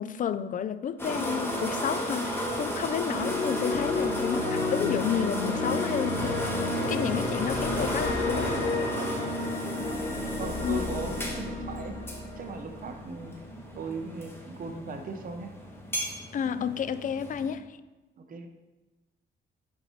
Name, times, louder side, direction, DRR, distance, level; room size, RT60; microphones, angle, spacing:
voice 1, 0.0-6.5 6.9-8.5 10.6-10.9 16.3-17.8, left 8 dB, 40° left, 0.4 m, -31 dB
sound 1, 1.0-17.5, equal, 10° left, 1.3 m, -34 dB
sound 2, 3.1-13.2, left 3 dB, 65° left, 1.5 m, -32 dB
voice 2, 9.4-11.9 12.4-13.3 13.8-15.5 18.2-18.5, right 4 dB, 45° right, 0.8 m, -38 dB
8.6 x 5.5 x 3.1 m
cardioid pair, 90°, 20 cm